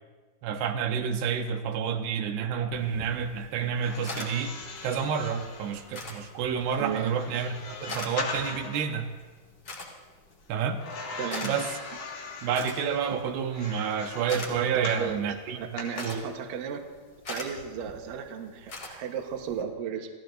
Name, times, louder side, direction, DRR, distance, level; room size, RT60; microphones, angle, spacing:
voice 1, 0.4-4.5 4.8-9.1 10.5-10.8 11.4-11.7 12.4-16.2, right 7 dB, 85° right, 4 dB, 3.0 m, -29 dB
sound 1, 2.7-19.6, left 2 dB, 35° left, 2.2 m, -44 dB
sound 2, 3.7-8.9 10.8-15.1 15.8-16.0, left 4 dB, 75° left, 3.9 m, -40 dB
voice 2, 6.8-7.2 11.2-11.6 14.8-15.3 15.6-16.8 17.3-20.1, right 7 dB, 65° right, 3 dB, 2.6 m, -34 dB
29.0 x 16.0 x 2.6 m, 1.4 s
omnidirectional pair, 4.6 m